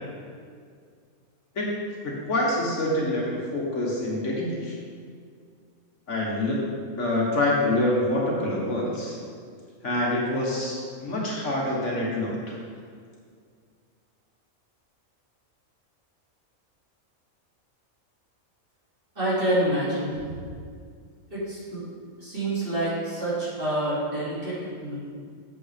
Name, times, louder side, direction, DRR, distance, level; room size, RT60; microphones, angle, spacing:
voice 1, 2.0-4.7 6.1-6.6 7.0-9.2 9.8-12.5, left 1 dB, 60° left, -4 dB, 1.6 m, -26 dB
voice 2, 19.2-20.3 21.3-21.9 22.2-25.0, right 1 dB, 40° right, -9 dB, 2.6 m, -27 dB
7.7 x 7.5 x 3.4 m, 2.1 s
omnidirectional pair, 1.5 m